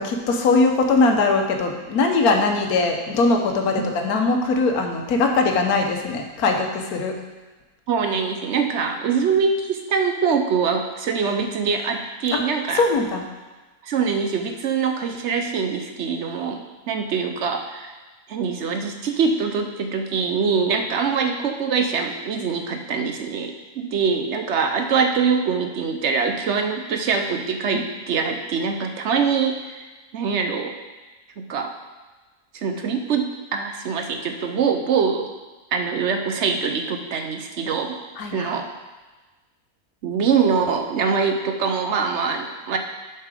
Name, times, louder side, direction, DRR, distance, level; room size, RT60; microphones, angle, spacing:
voice 1, 0.0-7.2 12.3-12.4 12.7-13.2 38.2-38.5, left 3 dB, 75° left, 3 dB, 1.4 m, -21 dB
voice 2, 7.9-12.8 13.8-17.9 18.3-29.8 30.1-30.8 31.4-31.7 32.5-35.3 35.7-38.0 38.3-38.7 40.0-42.8, right 5 dB, 60° right, 5 dB, 0.8 m, -23 dB
7.2 x 5.7 x 4.8 m, 1.2 s
omnidirectional pair, 1.6 m